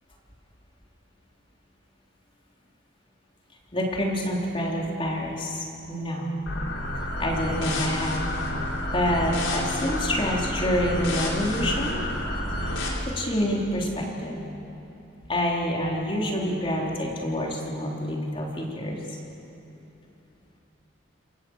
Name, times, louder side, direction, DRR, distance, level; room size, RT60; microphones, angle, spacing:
voice 1, 3.7-6.4 7.2-8.3 8.9-12.0 12.6-14.4 15.3-19.2, equal, 25° left, -2 dB, 3.8 m, -27 dB
sound 1, 6.5-12.9, left 1 dB, 65° left, 4.7 m, -29 dB
28.5 x 24.0 x 8.1 m, 2.9 s
head